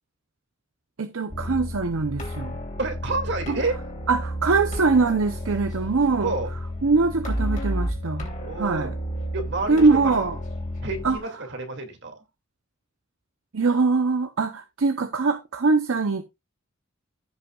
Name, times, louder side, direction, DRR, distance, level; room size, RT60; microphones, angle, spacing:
voice 1, 1.0-2.6 3.5-3.6 4.1-6.3 6.8-8.3 8.6-8.9 9.7-10.4 11.0-11.2 13.5-16.2, right 4 dB, 80° right, 0.7 m, -22 dB
sound 1, 1.3-11.2, equal, 40° left, 3.1 m, -32 dB
voice 2, 2.8-3.8 6.2-6.5 8.4-8.9 9.3-10.3 10.8-12.1, right 3 dB, 60° right, 2.4 m, -29 dB
15.0 x 5.7 x 2.4 m
head